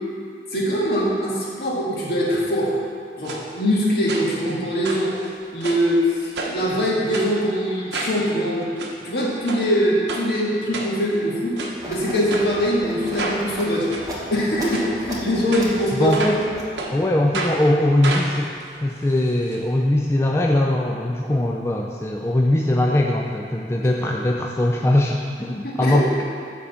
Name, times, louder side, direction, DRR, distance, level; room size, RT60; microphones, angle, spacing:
voice 1, 0.5-2.8 3.2-5.1 5.5-8.7 9.0-11.6 11.9-13.9 14.3-16.4 25.6-26.1, equal, 60° left, -5 dB, 1.8 m, -22 dB
sound 1, 3.2-3.4 4.1-4.5 4.8-5.9 6.3-6.7 7.1-7.3 7.9-8.2 8.6-8.9 9.5-9.6 10.1-10.2 10.7-11.2 11.6-11.7 12.3-12.5 13.1-13.4 13.9-14.0 14.7-14.9 15.5-16.4 16.8-16.9 17.3-17.6 18.0-19.6 19.9-20.0 20.2-20.3, right 3 dB, 80° right, 1.0 m, -30 dB
sound 2, 11.8-17.0, right 1 dB, 20° right, 1.2 m, -35 dB
voice 2, 16.0-16.4 16.9-18.5 18.8-26.2, left 1 dB, 15° left, 0 dB, 0.3 m, -21 dB
9.9 x 3.7 x 7.0 m, 2.4 s
head